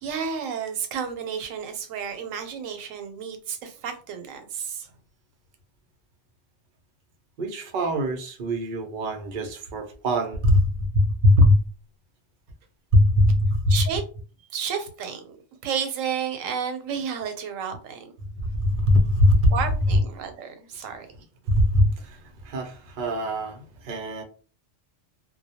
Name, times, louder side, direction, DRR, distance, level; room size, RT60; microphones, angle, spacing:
voice 1, 0.0-4.9 13.7-14.0 14.5-15.3 15.6-18.1 19.5-21.1, right 7 dB, 90° right, 1.0 m, -31 dB
voice 2, 7.4-11.6 12.9-13.7 18.3-19.5 21.5-24.2, left 1 dB, 60° right, 0.5 m, -21 dB
2.2 x 2.1 x 2.7 m
omnidirectional pair, 1.3 m